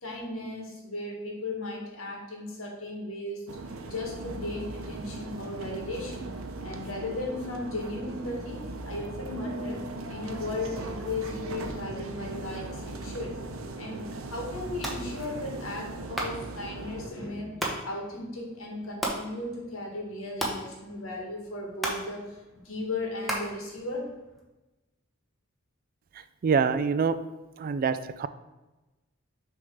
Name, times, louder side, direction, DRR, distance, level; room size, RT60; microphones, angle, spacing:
voice 1, 0.0-3.4 3.8-6.3 6.6-13.4 13.8-22.4 22.6-24.1, left 2 dB, 80° left, -1 dB, 1.8 m, -36 dB
sound 1, 3.5-17.1, right 2 dB, 80° right, 0.7 m, -39 dB
sound 2, 14.7-24.4, right 1 dB, ahead, 1.1 m, -38 dB
voice 2, 26.4-27.2 27.6-28.3, right 5 dB, 45° right, 13 dB, 0.3 m, -25 dB
6.3 x 3.6 x 5.4 m, 1.1 s
head